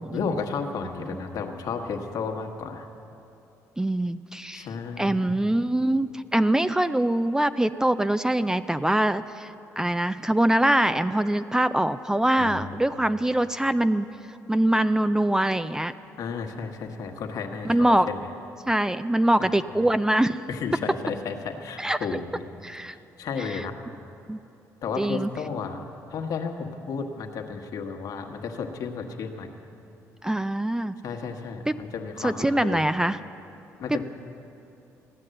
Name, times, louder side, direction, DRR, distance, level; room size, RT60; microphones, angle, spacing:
voice 1, 0.1-2.9 4.5-5.4 12.4-12.8 16.2-18.3 19.4-19.6 20.5-22.4 22.9-23.7 24.8-25.8 26.1-29.5 31.0-32.8 33.8-34.0, left 5 dB, 65° left, 3 dB, 1.4 m, -33 dB
voice 2, 3.8-4.7 5.0-14.1 14.5-15.9 17.6-18.1 18.7-20.4 21.8-22.0 22.6-23.0 23.4-23.6 24.3-24.4 25.0-25.3 30.2-30.9 31.7-31.8 32.2-33.2 33.9-34.0, right 1 dB, 10° right, 12 dB, 0.4 m, -23 dB
15.0 x 9.7 x 7.7 m, 2.7 s
supercardioid pair, 75°, 7 cm